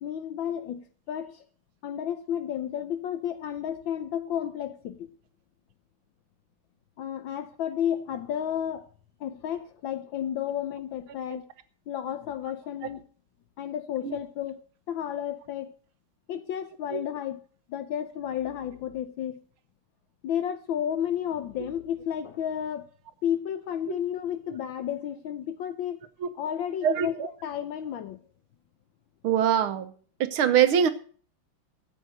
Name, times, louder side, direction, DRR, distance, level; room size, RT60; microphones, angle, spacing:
voice 1, 0.0-1.4 1.8-5.1 7.0-8.8 9.2-11.4 11.9-13.1 13.6-14.6 14.9-15.7 16.3-17.4 17.7-19.4 20.2-22.9 23.2-26.0 26.3-28.2, left 9 dB, 70° left, 1.5 m, -32 dB
voice 2, 26.8-27.3 29.2-29.9 30.2-30.9, right 9 dB, 80° right, 1.9 m, -23 dB
13.5 x 8.2 x 6.4 m
omnidirectional pair, 2.3 m